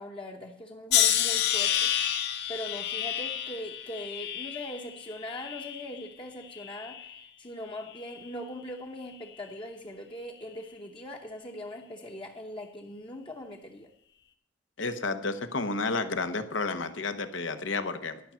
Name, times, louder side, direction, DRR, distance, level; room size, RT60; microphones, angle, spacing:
voice 1, 0.0-7.1 7.4-13.9, left 1 dB, 25° left, 0 dB, 0.9 m, -41 dB
sound 1, 0.9-6.1 6.5-7.2 7.9-8.2, left 10 dB, 60° left, 1.0 m, -30 dB
voice 2, 14.8-18.2, left 3 dB, 80° left, 9 dB, 1.1 m, -31 dB
12.0 x 5.8 x 8.6 m, 0.72 s
head